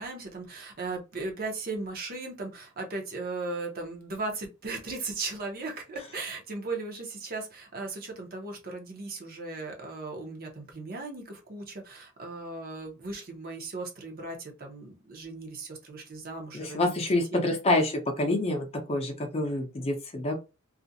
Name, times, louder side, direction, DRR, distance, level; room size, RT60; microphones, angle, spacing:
voice 1, 0.0-16.9 17.3-17.4, right 3 dB, 45° right, 0.7 m, -37 dB
voice 2, 16.5-20.3, left 2 dB, 30° left, 0.6 m, -27 dB
2.4 x 2.1 x 2.6 m
head